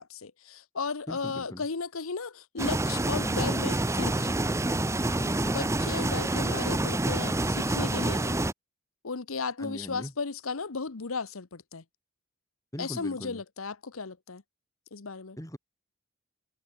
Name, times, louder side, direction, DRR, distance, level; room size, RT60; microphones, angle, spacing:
voice 1, 0.0-4.4 5.5-8.4 9.0-11.8 12.8-14.4 14.9-15.4, left 4 dB, 80° left, 1.0 m, -35 dB
voice 2, 1.1-1.6 5.2-5.7 9.6-10.1 12.7-13.4 15.4-15.6, equal, 15° left, 6.3 m, -39 dB
sound 1, 2.6-8.5, right 2 dB, 15° right, 0.7 m, -27 dB
head